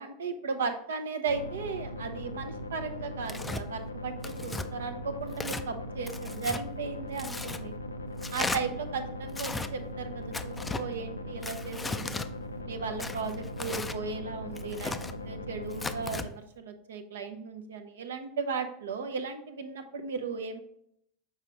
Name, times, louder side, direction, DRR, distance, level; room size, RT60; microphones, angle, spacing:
voice 1, 0.0-7.7 8.3-12.1 12.6-14.9 15.2-20.6, right 5 dB, 65° right, 7 dB, 0.7 m, -36 dB
sound 1, 1.3-16.3, left 1 dB, 80° left, 0.4 m, -39 dB
Tearing, 3.3-3.6 4.2-4.7 5.3-5.7 6.1-6.6 7.2-7.6 8.2-8.6 9.3-9.7 10.3-10.8 11.4-12.3 13.0-14.0 14.6-15.1 15.7-16.3, left 3 dB, 10° left, 0.3 m, -36 dB
6.6 x 4.9 x 3.0 m, 0.71 s
figure-of-eight pair, 80°, 0 cm